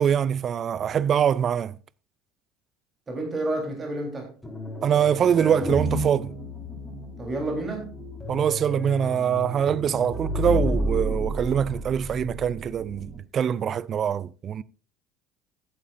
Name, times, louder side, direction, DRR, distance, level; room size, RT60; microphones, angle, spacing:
voice 1, 0.0-1.8 4.8-6.3 8.3-14.6, right 8 dB, 40° right, 0.4 m, -24 dB
voice 2, 3.1-4.3 7.2-8.0, right 2 dB, 25° right, 3.6 m, -30 dB
sound 1, 4.4-13.2, equal, 5° left, 4.3 m, -31 dB
15.0 x 8.8 x 2.6 m
hypercardioid pair, 75°, 0 cm